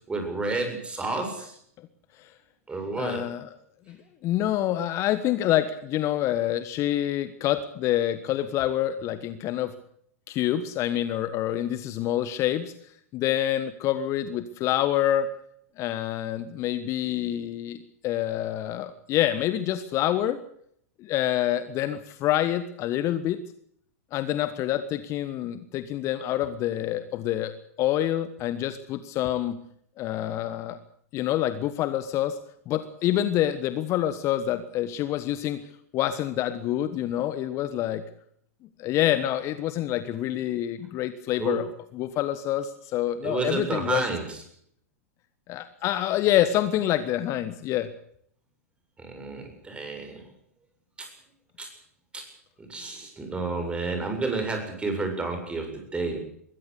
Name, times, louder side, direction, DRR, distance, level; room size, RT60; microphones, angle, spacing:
voice 1, 0.1-1.6 2.7-3.2 41.4-41.6 43.2-44.4 49.0-50.2 51.0-51.1 51.6-51.7 52.1-52.2 52.6-56.2, right 3 dB, 15° right, 5 dB, 7.5 m, -30 dB
voice 2, 3.0-3.5 3.9-4.0 4.2-9.7 10.3-12.7 13.1-15.3 15.8-17.8 18.0-20.4 21.0-23.4 24.1-29.6 30.0-30.8 31.1-32.4 32.7-35.6 35.9-38.0 38.8-44.0 45.5-47.9, left 12 dB, 35° left, 13 dB, 1.4 m, -27 dB
22.0 x 16.0 x 8.4 m, 0.66 s
figure-of-eight pair, 95°, 8 cm